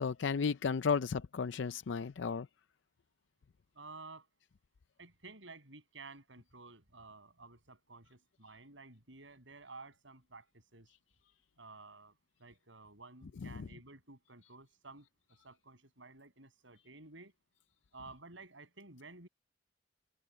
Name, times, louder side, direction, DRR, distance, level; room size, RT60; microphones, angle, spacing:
voice 1, 0.0-2.5 13.4-13.7, left 5 dB, 75° left, 0.5 m, -34 dB
voice 2, 3.7-4.3 5.0-10.9 11.6-17.3 17.9-19.3, right 3 dB, 80° right, 6.9 m, -53 dB
head